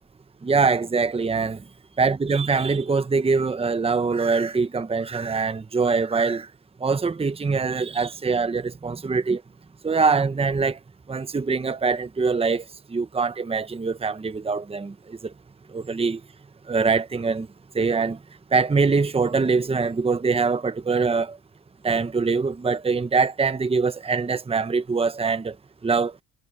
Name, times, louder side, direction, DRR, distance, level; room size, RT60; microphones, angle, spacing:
voice 1, 0.4-1.6 2.0-6.5 6.8-9.4 9.8-10.8 11.1-12.6 12.9-15.3 15.7-16.2 16.7-17.5 17.7-18.2 18.5-21.4 21.8-25.5 25.8-26.1, right 4 dB, 20° right, 0.9 m, -23 dB
cardioid pair, 90°, 30 cm